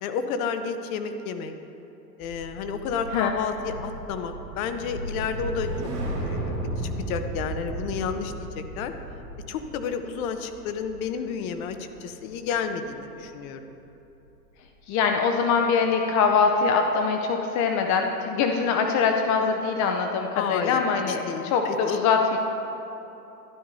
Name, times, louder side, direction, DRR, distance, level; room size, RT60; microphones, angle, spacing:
voice 1, 0.0-1.5 2.2-5.7 6.2-8.9 9.5-13.8 20.3-22.0, left 6 dB, 60° left, 8 dB, 0.9 m, -31 dB
sound 1, 2.2-12.6 13.0-13.3, right 1 dB, 75° right, 2.4 m, -35 dB
voice 2, 14.9-22.4, left 5 dB, 35° left, 4 dB, 0.7 m, -23 dB
12.0 x 11.5 x 2.7 m, 3.0 s
hypercardioid pair, 105°, 48 cm